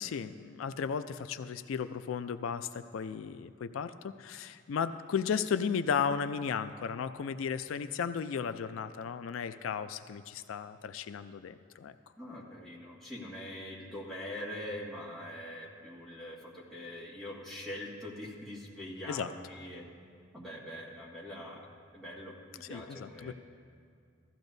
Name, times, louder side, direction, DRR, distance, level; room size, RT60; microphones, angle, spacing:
voice 1, 0.0-11.9 19.1-19.3 22.6-23.3, left 6 dB, 85° left, 11 dB, 0.4 m, -35 dB
voice 2, 12.2-19.9 20.3-21.7 21.9-23.3, left 1 dB, ahead, -7 dB, 1.8 m, -43 dB
15.5 x 13.5 x 2.7 m, 2.3 s
head